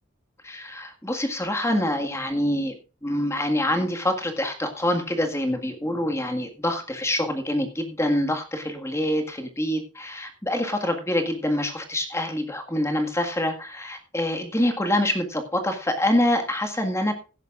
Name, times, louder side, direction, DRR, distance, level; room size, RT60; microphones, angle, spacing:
voice 1, 0.4-2.8 3.0-17.1, left 1 dB, 15° left, 4 dB, 1.8 m, -25 dB
17.0 x 10.5 x 2.5 m, 0.34 s
head